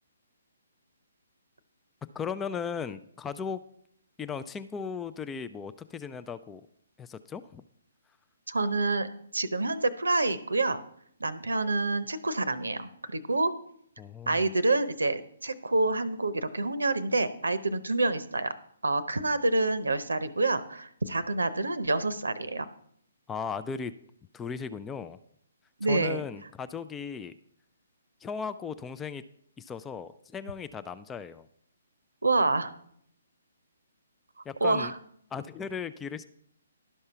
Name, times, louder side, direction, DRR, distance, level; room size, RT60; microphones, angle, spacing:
voice 1, 2.0-3.6 4.2-6.6 7.0-7.6 14.0-14.4 23.3-23.9 24.3-25.2 25.9-27.3 28.2-29.2 29.6-31.5 34.5-34.9 35.3-36.2, left 6 dB, 10° left, 12 dB, 0.3 m, -36 dB
voice 2, 8.5-9.1 9.3-10.8 11.2-13.5 14.3-18.5 18.8-22.7 25.8-26.2 32.2-32.7 34.6-34.9, right 2 dB, 80° right, 14 dB, 0.7 m, -27 dB
11.5 x 5.4 x 5.7 m, 0.68 s
figure-of-eight pair, 135°, 0 cm